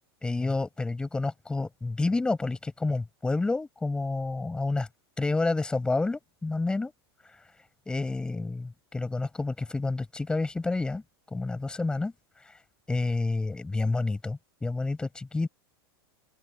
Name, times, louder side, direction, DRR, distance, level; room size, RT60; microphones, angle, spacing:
voice 1, 0.2-4.9 5.2-6.9 7.9-11.0 11.3-12.1 12.4-12.5 12.9-15.5, left 3 dB, 5° left, 7.1 m, -29 dB
supercardioid pair, 165°, 13 cm